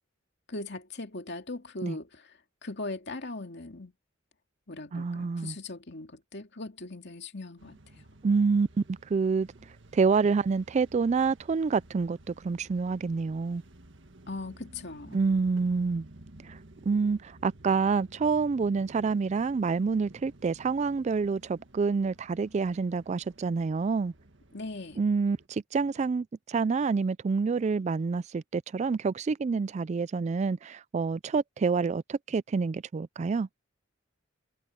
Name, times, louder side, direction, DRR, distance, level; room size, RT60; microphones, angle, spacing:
voice 1, 0.5-2.3 2.6-3.9 4.7-8.1 14.3-15.2 24.5-25.1, left 2 dB, 60° left, 2.5 m, -39 dB
voice 2, 4.9-5.6 8.2-9.5 9.9-13.6 15.1-16.1 16.4-16.6 16.9-24.1 25.0-33.5, right 4 dB, 35° right, 0.3 m, -27 dB
sound 1, 7.6-25.5, right 1 dB, 65° right, 1.8 m, -53 dB
head